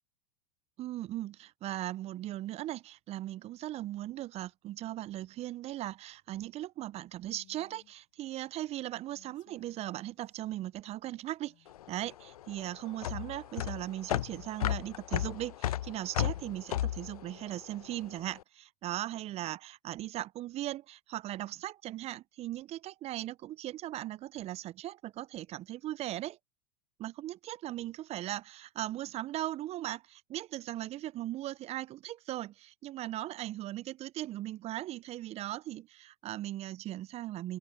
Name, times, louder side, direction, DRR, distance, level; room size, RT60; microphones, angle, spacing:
voice 1, 0.8-11.5 11.9-26.4 27.0-37.6, right 14 dB, 35° right, 0.7 m, -38 dB
Female speech woman speaking, 7.2-7.9 9.0-10.5 11.0-11.9, left 20 dB, 45° left, 5.7 m, -65 dB
sound 1, 11.7-18.2, left 12 dB, 75° left, 0.4 m, -34 dB
open air
hypercardioid pair, 95°, 19 cm